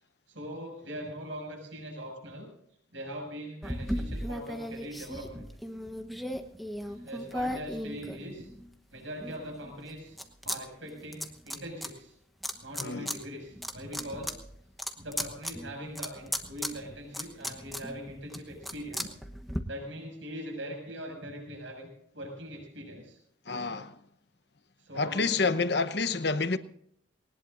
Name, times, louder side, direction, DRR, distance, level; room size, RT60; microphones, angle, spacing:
voice 1, 0.3-2.5 2.9-5.5 6.9-8.5 8.9-10.2 10.4-12.1 12.6-14.4 15.0-19.2 19.6-21.9 22.1-23.2 24.8-25.3, equal, 75° right, 6.7 m, -41 dB
sound 1, 3.6-8.7 9.2-10.6 10.8-11.9 12.4-13.2 13.5-19.6, equal, ahead, 1.0 m, -36 dB
voice 2, 12.8-13.1 23.5-24.0 24.9-26.6, left 4 dB, 55° left, 0.9 m, -28 dB
20.5 x 19.5 x 2.6 m
head